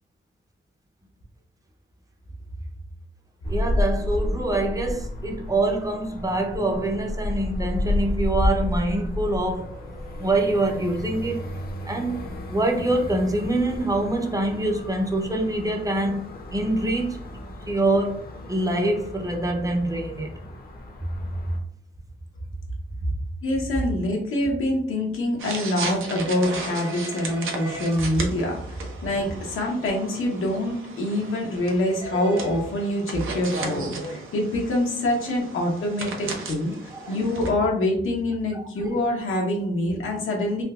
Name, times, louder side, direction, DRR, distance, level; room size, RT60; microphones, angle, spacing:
sound 1, 3.4-21.6, left 1 dB, 50° left, 0.6 m, -31 dB
voice 1, 3.5-9.8 10.2-11.5 11.8-16.3 16.5-17.2 17.7-18.2 18.5-20.4 27.2-27.3 27.6-28.0 36.9-37.3 38.8-39.0, right 1 dB, 15° right, 2 dB, 0.5 m, -25 dB
voice 2, 23.4-40.6, left 1 dB, 90° left, -1 dB, 0.9 m, -25 dB
sound 2, 25.4-37.5, right 3 dB, 80° right, 0.7 m, -35 dB
3.6 x 2.7 x 2.3 m, 0.62 s
wide cardioid pair, 115°, 21 cm